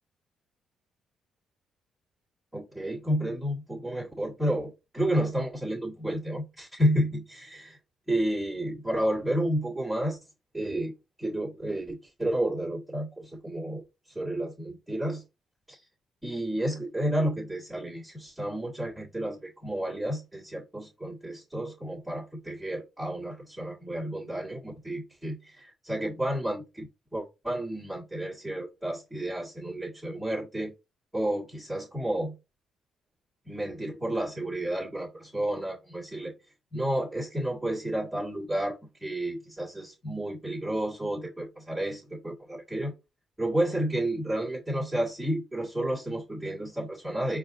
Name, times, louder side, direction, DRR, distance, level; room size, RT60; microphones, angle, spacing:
voice 1, 2.5-7.8 8.1-10.2 10.5-10.9 11.2-13.8 14.1-15.2 15.7-15.8 16.2-26.9 27.1-30.7 31.1-32.3 33.5-36.3 36.7-38.8 39.0-42.9 43.4-47.4, right 1 dB, 5° right, 1.9 m, -31 dB
4.6 x 2.6 x 3.8 m
cardioid pair, 90°, 0 cm